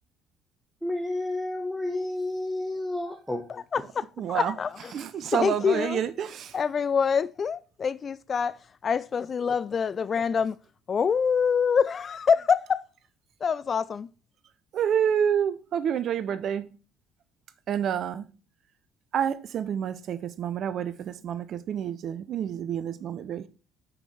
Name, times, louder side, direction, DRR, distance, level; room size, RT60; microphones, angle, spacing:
voice 1, 0.8-3.4, left 1 dB, ahead, 1.2 m, -30 dB
voice 2, 3.5-4.1 4.3-4.9 5.3-6.0 6.5-8.6 8.8-10.5 10.9-12.8 13.4-14.1, left 6 dB, 40° left, 0.3 m, -25 dB
voice 3, 4.2-4.5 4.9-6.5 14.7-16.7 17.7-18.2 19.1-23.5, right 8 dB, 50° right, 0.6 m, -28 dB
6.0 x 5.1 x 5.9 m
figure-of-eight pair, 55°, 0 cm